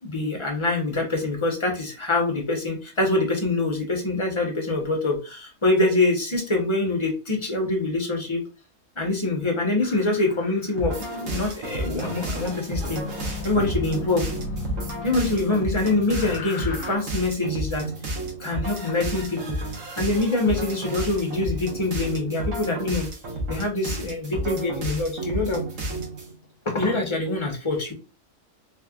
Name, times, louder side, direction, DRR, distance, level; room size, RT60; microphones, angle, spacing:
voice 1, 0.0-8.4 9.0-14.3 15.0-17.9 18.4-19.6 20.0-23.1 23.5-25.7 26.6-27.9, left 2 dB, 25° left, 1 dB, 0.9 m, -25 dB
sound 1, 9.8-11.2 12.7-17.0, left 3 dB, 75° left, 0.9 m, -36 dB
sound 2, 10.8-26.3, right 1 dB, 70° right, 1.3 m, -32 dB
3.5 x 3.2 x 2.4 m, 0.31 s
omnidirectional pair, 1.4 m